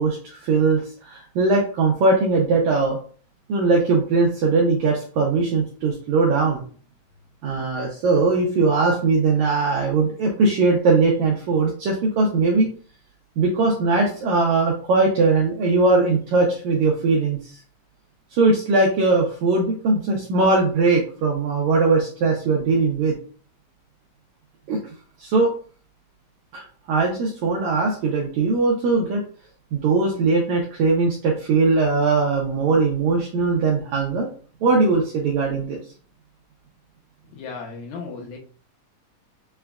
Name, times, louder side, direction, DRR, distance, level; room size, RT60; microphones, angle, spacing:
voice 1, 0.0-3.0 3.5-6.6 7.4-12.7 13.4-17.6 18.3-23.2 24.7-24.8 25.2-25.5 26.5-29.2 29.7-34.3 34.6-35.8, right 3 dB, 80° right, -1 dB, 1.6 m, -20 dB
voice 2, 37.3-38.4, left 4 dB, 80° left, 0 dB, 2.5 m, -35 dB
6.9 x 2.3 x 2.2 m, 0.42 s
omnidirectional pair, 4.1 m